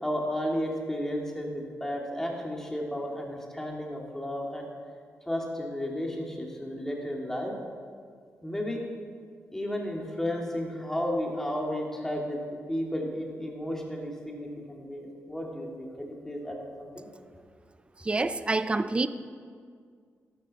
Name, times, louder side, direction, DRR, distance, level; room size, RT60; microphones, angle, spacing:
voice 1, 0.0-4.6 5.3-7.5 8.4-8.8 9.5-17.1, equal, 10° left, -1 dB, 2.2 m, -33 dB
voice 2, 18.0-19.1, right 3 dB, 20° right, 13 dB, 0.5 m, -27 dB
12.5 x 12.0 x 4.2 m, 2.1 s
cardioid pair, 90°, 5 cm